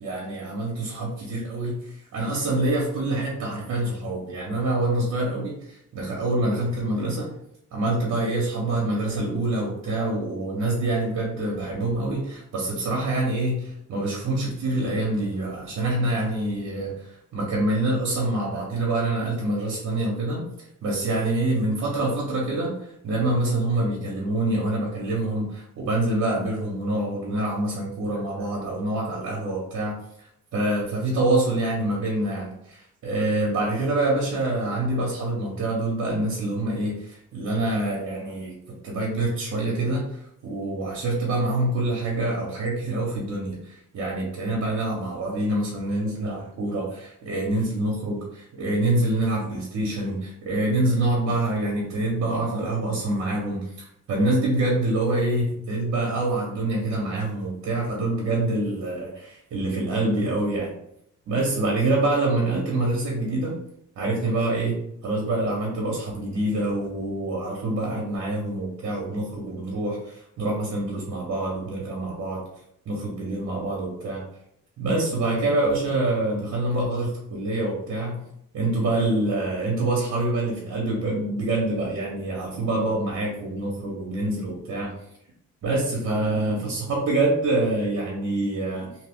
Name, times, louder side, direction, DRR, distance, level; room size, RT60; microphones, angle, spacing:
voice 1, 0.0-7.3 7.7-38.5 38.8-60.7 61.3-63.6 64.0-72.4 72.9-74.2 74.8-78.3 78.5-84.9 85.6-88.9, right 2 dB, 60° right, -3 dB, 0.9 m, -26 dB
2.7 x 2.3 x 3.6 m, 0.76 s
cardioid pair, 90°, 30 cm